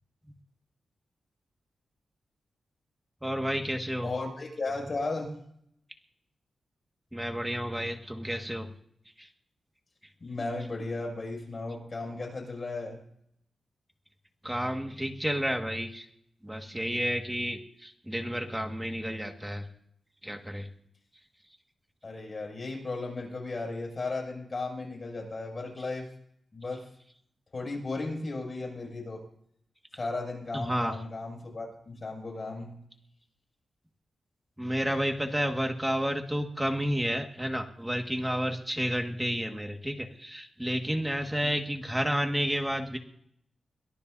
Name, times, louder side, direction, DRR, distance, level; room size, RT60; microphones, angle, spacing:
voice 1, 3.2-4.1 7.1-8.7 9.2-9.3 14.4-16.1 16.4-19.7 20.2-20.7 30.5-30.9 34.6-43.0, equal, 5° right, 3 dB, 1.8 m, -31 dB
voice 2, 4.0-5.3 10.2-13.0 22.0-26.1 26.5-26.8 27.5-29.2 30.0-32.7 41.4-41.5, left 3 dB, 40° left, 0 dB, 6.5 m, -35 dB
23.0 x 17.5 x 2.7 m, 0.68 s
wide cardioid pair, 100°, 0 cm